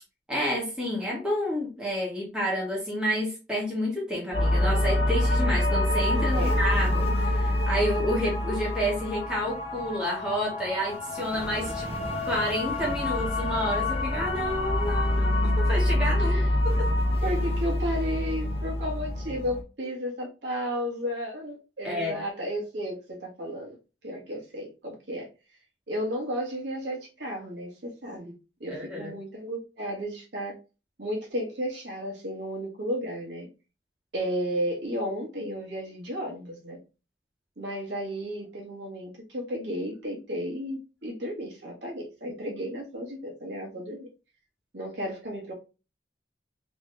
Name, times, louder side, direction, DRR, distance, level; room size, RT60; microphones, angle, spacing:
voice 1, 0.3-16.4 16.6-16.9 21.8-22.2 28.7-29.1, equal, 5° right, -4 dB, 1.5 m, -30 dB
sound 1, 4.3-19.6, left 1 dB, 35° left, 0.8 m, -26 dB
sound 2, 11.2-16.2, right 1 dB, 35° right, 1.2 m, -41 dB
voice 2, 17.2-23.8 24.0-25.3 25.9-27.7 28.0-28.3 28.6-30.6 31.0-33.5 34.1-36.8 37.6-44.1 44.7-45.5, equal, 75° right, -1 dB, 1.6 m, -33 dB
3.5 x 3.2 x 3.4 m, 0.30 s
head